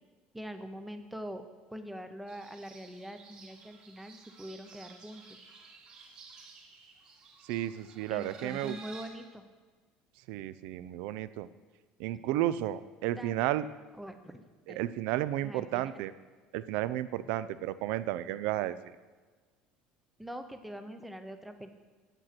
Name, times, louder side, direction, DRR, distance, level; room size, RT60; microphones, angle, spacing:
voice 1, 0.3-1.4 1.7-5.2 8.1-9.4 13.2-13.4 14.0-14.8 15.4-15.9 20.2-21.7, equal, 5° right, 8 dB, 0.6 m, -43 dB
sound 1, 2.3-9.1, right 4 dB, 35° right, 2.4 m, -53 dB
voice 2, 7.4-8.8 10.3-11.5 12.0-13.7 14.7-16.1 16.5-18.9, right 13 dB, 70° right, 15 dB, 0.5 m, -32 dB
9.0 x 7.8 x 5.9 m, 1.4 s
cardioid pair, 160°, 2 cm